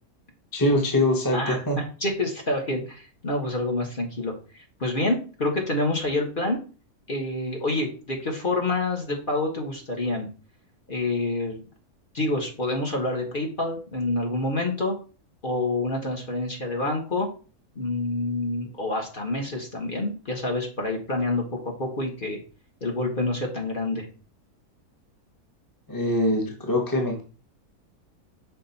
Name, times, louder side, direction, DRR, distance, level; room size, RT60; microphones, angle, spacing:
voice 1, 0.5-1.8 25.9-27.2, left 1 dB, 15° left, 2 dB, 1.0 m, -23 dB
voice 2, 2.0-4.3 4.8-6.6 7.1-10.3 10.9-11.6 12.1-14.9 15.4-17.3 17.7-22.4 22.8-24.1, left 2 dB, 35° left, 0 dB, 1.4 m, -27 dB
6.0 x 4.2 x 4.1 m, 0.37 s
omnidirectional pair, 1.6 m